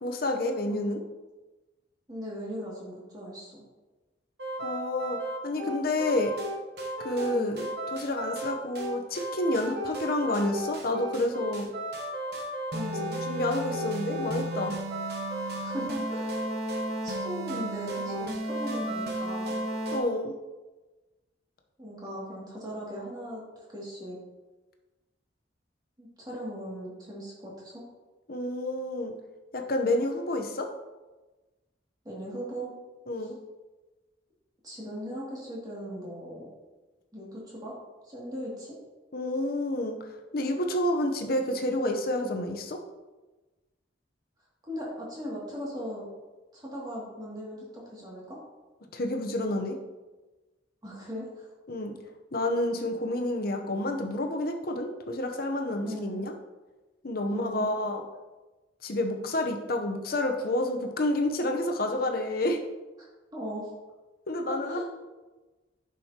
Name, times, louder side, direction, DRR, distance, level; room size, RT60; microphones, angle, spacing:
voice 1, 0.0-1.0 4.6-5.2 5.4-6.3 7.0-7.6 7.9-11.7 13.3-14.7 19.9-20.3 28.3-29.1 29.5-30.7 33.1-33.3 39.1-40.0 40.3-42.8 48.9-49.8 51.7-51.9 52.3-56.3 57.0-58.0 58.8-62.6 64.3-64.8, left 1 dB, 55° left, 4 dB, 0.8 m, -29 dB
voice 2, 0.7-1.0 2.1-3.6 7.3-7.7 12.7-13.2 15.6-16.4 17.0-19.6 21.8-24.2 26.0-27.8 32.0-32.7 34.6-36.5 37.1-37.7 38.1-38.8 44.7-46.0 46.5-48.4 50.8-51.5 55.8-56.3 57.3-57.7 63.3-63.7 64.5-64.8, equal, 20° right, -5 dB, 2.3 m, -38 dB
sound 1, 4.4-20.0, right 1 dB, 60° right, 0.9 m, -34 dB
9.0 x 6.2 x 2.9 m, 1.2 s
head